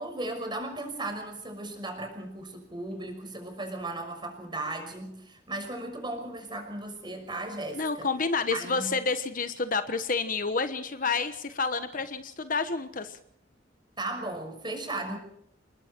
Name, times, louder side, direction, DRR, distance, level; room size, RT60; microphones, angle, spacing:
voice 1, 0.0-8.1 8.5-9.0 14.0-15.2, right 2 dB, 25° right, 5 dB, 5.9 m, -36 dB
voice 2, 7.7-13.2, left 4 dB, 45° left, 10 dB, 1.2 m, -29 dB
28.5 x 20.5 x 4.6 m, 0.71 s
head